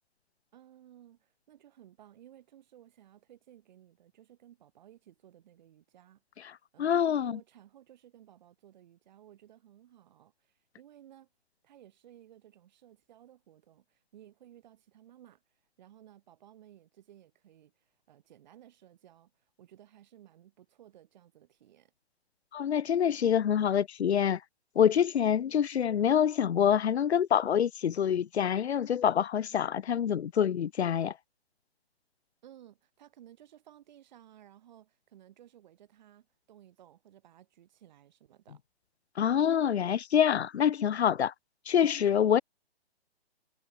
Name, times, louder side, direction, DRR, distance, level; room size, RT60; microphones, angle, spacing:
voice 1, 0.5-11.3 11.6-21.9 32.4-38.6, right 11 dB, 45° right, 7.1 m, -57 dB
voice 2, 6.8-7.4 22.5-24.4 24.8-31.1 39.2-41.3 41.7-42.4, left 9 dB, 85° left, 0.6 m, -26 dB
hypercardioid pair, 150°, 32 cm